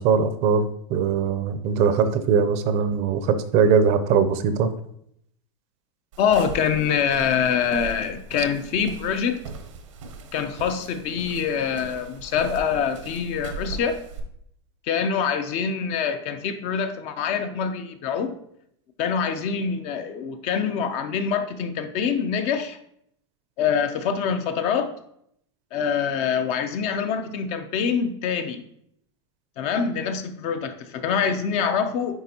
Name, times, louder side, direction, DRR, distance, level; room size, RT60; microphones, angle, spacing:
voice 1, 0.0-4.7, right 6 dB, 45° right, 10 dB, 0.6 m, -21 dB
sound 1, 6.1-14.2, right 4 dB, 85° right, 1.0 m, -40 dB
voice 2, 6.2-9.4 10.3-14.0 14.8-18.4 19.0-22.8 23.6-24.9 25.7-28.6 29.6-32.2, left 7 dB, 45° left, 9 dB, 0.6 m, -25 dB
9.3 x 3.5 x 2.9 m, 0.71 s
supercardioid pair, 130°, 16 cm